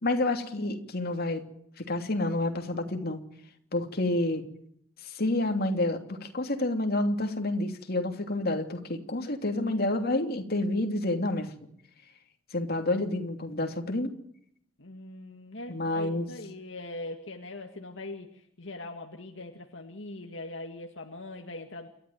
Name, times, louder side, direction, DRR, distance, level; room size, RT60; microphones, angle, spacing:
voice 1, 0.0-1.4 1.8-3.2 3.7-4.4 5.0-11.7 12.5-14.1 15.7-16.3, left 2 dB, 55° left, 5 dB, 3.0 m, -29 dB
voice 2, 14.8-21.9, left 2 dB, 70° left, 3 dB, 2.1 m, -41 dB
29.0 x 13.5 x 9.4 m, 0.70 s
head